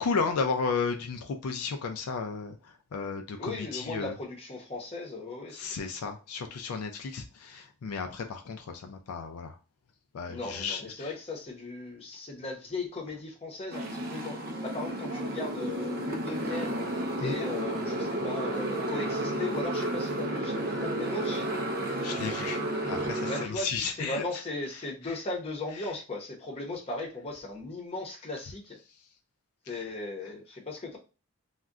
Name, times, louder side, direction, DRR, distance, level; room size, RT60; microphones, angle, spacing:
voice 1, 0.0-2.6 2.9-4.1 5.5-9.6 10.1-11.1 17.2-17.4 22.0-22.6 22.9-24.4 25.0-25.2 29.7-29.9, left 5 dB, 75° left, 5 dB, 0.4 m, -33 dB
voice 2, 3.4-5.6 10.3-14.4 14.6-16.8 17.2-21.5 23.2-28.8 29.7-31.0, left 2 dB, 25° left, -1 dB, 0.7 m, -37 dB
Motorcycle, 13.7-23.5, right 1 dB, 40° right, 0.4 m, -32 dB
2.4 x 2.1 x 3.6 m, 0.32 s
head